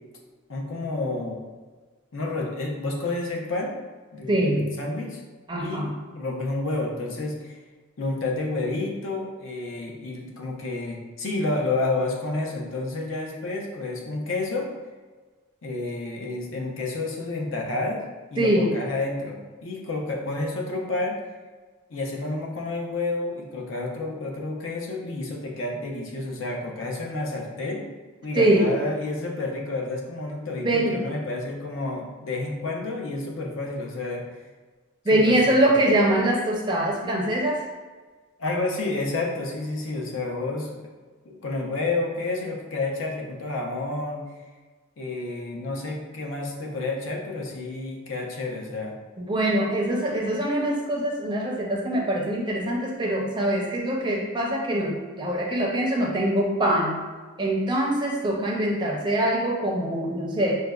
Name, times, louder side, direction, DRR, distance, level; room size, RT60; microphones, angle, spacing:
voice 1, 0.5-1.4 2.1-3.7 4.1-5.2 5.6-5.9 6.1-7.5 8.0-14.7 15.6-18.0 18.3-21.2 21.9-27.9 28.2-34.2 35.1-35.4 35.6-35.7 38.4-40.7 41.2-44.2 45.0-48.9, left 2 dB, 70° left, -1 dB, 0.6 m, -30 dB
voice 2, 4.3-4.7 5.5-5.9 18.4-18.7 28.3-28.7 30.6-31.0 35.0-37.7 49.2-57.0 57.4-60.5, right 1 dB, 20° right, -2 dB, 0.4 m, -23 dB
4.9 x 2.1 x 2.3 m, 1.4 s
head